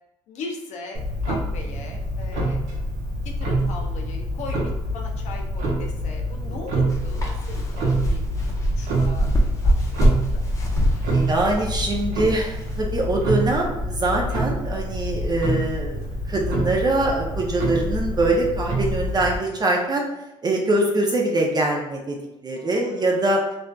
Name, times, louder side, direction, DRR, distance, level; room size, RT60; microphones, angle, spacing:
voice 1, 0.3-2.6 3.2-10.4 22.5-23.2, left 3 dB, 70° left, 1 dB, 0.4 m, -39 dB
Clock, 0.9-19.4, right 1 dB, 80° right, 0.6 m, -26 dB
sound 1, 6.9-12.8, equal, 25° left, 0.6 m, -24 dB
voice 2, 11.0-16.0 16.3-20.0 20.4-22.2 22.4-23.4, right 2 dB, 35° right, -1 dB, 0.5 m, -23 dB
2.5 x 2.2 x 2.2 m, 0.94 s
supercardioid pair, 70°, 12 cm